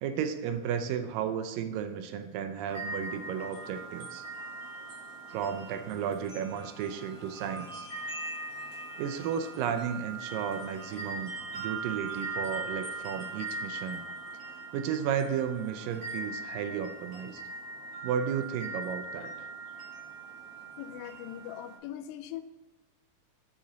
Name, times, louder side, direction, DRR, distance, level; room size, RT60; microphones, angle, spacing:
voice 1, 0.0-4.3 5.3-7.9 9.0-14.0 14.7-17.4 18.0-19.3, right 8 dB, 80° right, 8 dB, 2.2 m, -33 dB
sound 1, 2.7-21.8, right 3 dB, 55° right, 2.0 m, -40 dB
voice 2, 20.8-22.4, left 11 dB, 90° left, 11 dB, 2.4 m, -41 dB
7.3 x 6.7 x 4.0 m, 1.1 s
omnidirectional pair, 4.1 m